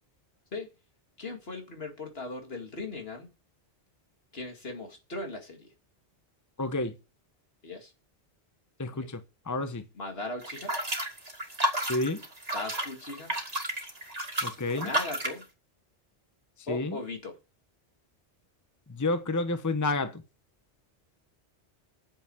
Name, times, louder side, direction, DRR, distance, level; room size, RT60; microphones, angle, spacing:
voice 1, 1.2-3.3 4.3-5.7 7.6-7.9 9.0-9.1 9.9-10.7 12.5-13.3 14.7-15.4 16.7-17.4, left 2 dB, 60° left, 2.5 m, -38 dB
voice 2, 6.6-6.9 8.8-9.2 9.5-9.8 11.9-12.2 14.4-14.9 16.7-17.0 18.9-20.2, left 2 dB, 15° left, 0.9 m, -29 dB
sound 1, 10.4-15.4, right 1 dB, 35° right, 2.4 m, -32 dB
9.1 x 7.5 x 7.8 m
omnidirectional pair, 1.2 m